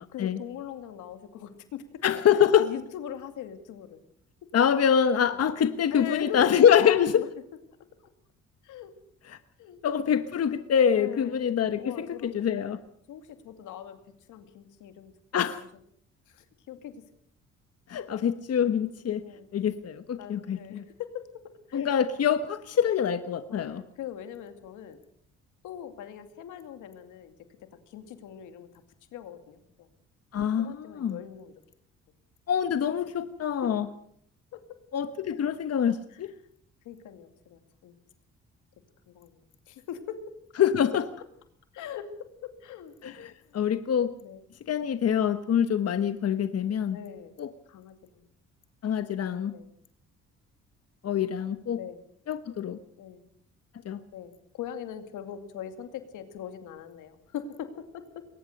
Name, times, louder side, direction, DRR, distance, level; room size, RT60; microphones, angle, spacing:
voice 1, 0.1-2.0 2.6-4.0 5.9-6.4 6.7-7.3 8.6-8.9 9.6-9.8 11.0-11.4 11.8-12.8 13.1-14.0 14.3-15.1 16.3-17.1 19.2-19.5 20.2-21.9 23.5-25.0 25.6-27.3 27.7-28.7 29.1-29.9 30.6-31.5 33.6-33.8 34.5-34.8 36.1-36.2 36.8-38.0 39.1-40.2 41.7-43.1 43.5-43.6 44.2-44.4 46.9-47.3 47.7-48.3 49.5-49.7 51.7-52.0 53.0-53.2 54.1-58.2, left 9 dB, 90° left, 8 dB, 2.4 m, -41 dB
voice 2, 2.0-2.7 4.5-7.2 9.3-9.4 9.8-12.8 15.3-15.6 17.9-19.2 19.5-20.8 21.7-23.8 30.3-31.2 32.5-33.9 34.9-36.3 40.6-41.1 43.0-44.1 44.7-47.0 47.4-47.5 48.8-49.5 51.0-51.8 52.3-52.8 53.8-54.0, left 8 dB, 55° left, 10 dB, 1.2 m, -25 dB
22.0 x 19.0 x 6.6 m, 0.67 s
cardioid pair, 90°, 30 cm